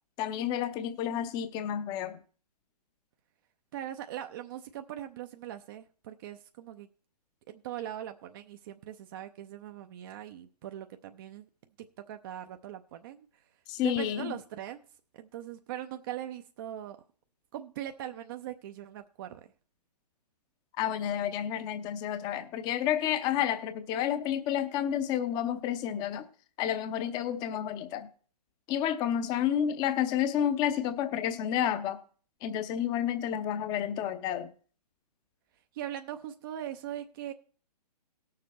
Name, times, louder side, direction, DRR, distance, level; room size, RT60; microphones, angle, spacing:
voice 1, 0.2-2.2 13.7-14.4 20.8-26.3 26.6-28.1 28.7-32.0 32.4-34.5, left 10 dB, 20° left, 10 dB, 0.7 m, -30 dB
voice 2, 3.7-6.9 7.5-11.5 12.1-13.3 13.8-14.8 15.1-17.0 17.5-19.5 35.7-37.3, right 11 dB, 35° right, 7 dB, 0.6 m, -40 dB
17.5 x 6.7 x 4.1 m, 0.42 s
figure-of-eight pair, 125°, 21 cm